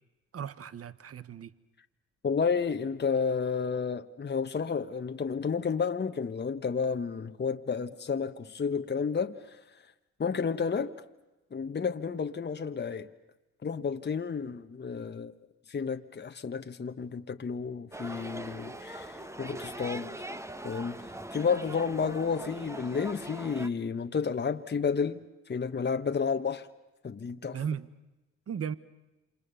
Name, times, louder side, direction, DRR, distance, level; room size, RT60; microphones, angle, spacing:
voice 1, 0.3-1.5 27.5-27.9 28.5-28.7, right 7 dB, 50° right, 1.2 m, -36 dB
voice 2, 2.2-9.6 10.2-10.9 11.5-13.1 13.6-15.3 15.7-20.2 20.6-25.2 25.5-26.7 27.0-27.6, left 5 dB, 35° left, 1.3 m, -31 dB
sound 1, 17.9-23.7, right 1 dB, 10° right, 1.4 m, -41 dB
28.5 x 27.0 x 7.0 m
cardioid pair, 75°, 31 cm